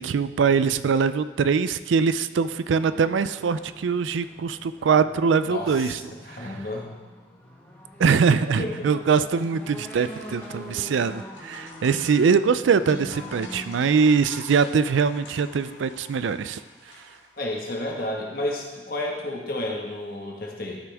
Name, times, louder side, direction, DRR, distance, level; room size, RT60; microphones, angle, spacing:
voice 1, 0.0-6.0 6.4-6.5 8.0-16.6, right 5 dB, 85° right, 13 dB, 0.4 m, -22 dB
sound 1, 2.6-13.9, equal, 10° left, 1.4 m, -44 dB
voice 2, 5.5-6.9 8.6-8.9 17.4-20.8, left 1 dB, 50° left, -1 dB, 1.5 m, -31 dB
sound 2, 10.0-17.6, left 3 dB, 85° left, 1.7 m, -46 dB
13.0 x 6.0 x 3.5 m, 1.2 s
head